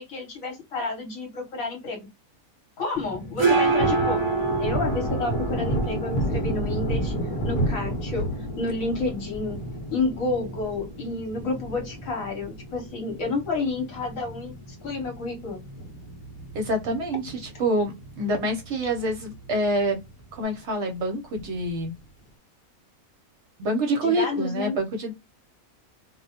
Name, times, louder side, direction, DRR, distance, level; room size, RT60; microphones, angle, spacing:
voice 1, 0.0-2.1 2.8-4.2 4.6-7.1 7.4-8.3 8.6-9.6 9.9-15.6 24.0-24.8, left 3 dB, 75° left, 1.1 m, -30 dB
sound 1, 3.0-20.4, right 3 dB, 35° right, 0.5 m, -32 dB
Thunder, 3.4-14.1 14.5-14.6 14.9-16.4 16.7-16.9 17.2-18.0 18.4-18.5 18.9-19.0 21.3-21.9, right 1 dB, 50° left, 0.9 m, -31 dB
voice 2, 16.5-20.0 20.3-21.9 23.6-25.1, right 1 dB, 60° right, 0.8 m, -26 dB
2.4 x 2.1 x 2.7 m
omnidirectional pair, 1.5 m